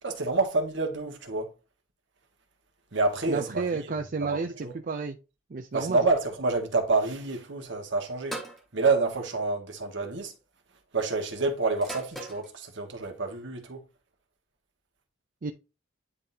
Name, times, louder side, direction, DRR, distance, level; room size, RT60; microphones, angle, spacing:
voice 1, 0.0-1.5 2.9-3.7 4.2-4.7 5.7-8.4 8.7-10.3 10.9-13.8, right 3 dB, 65° right, 1.5 m, -28 dB
voice 2, 3.3-5.2 5.5-6.0 15.4-15.5, right 4 dB, 45° right, 0.5 m, -31 dB
sound 1, 8.3-8.6 9.8-10.2 11.8-12.5, right 1 dB, ahead, 1.4 m, -38 dB
9.7 x 3.7 x 2.8 m
head